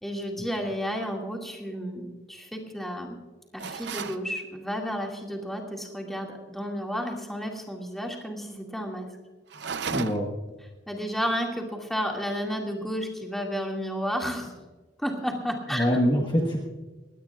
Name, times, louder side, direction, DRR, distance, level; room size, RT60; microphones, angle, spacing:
voice 1, 0.0-3.2 3.5-9.1 10.9-14.6 15.0-15.8, equal, ahead, 0 dB, 2.2 m, -32 dB
sound 1, 3.6-4.2 9.5-10.4, right 5 dB, 60° right, 0.7 m, -33 dB
voice 2, 9.9-10.3 15.7-16.6, equal, 25° left, 0 dB, 1.4 m, -24 dB
21.0 x 17.0 x 2.4 m, 1.2 s
head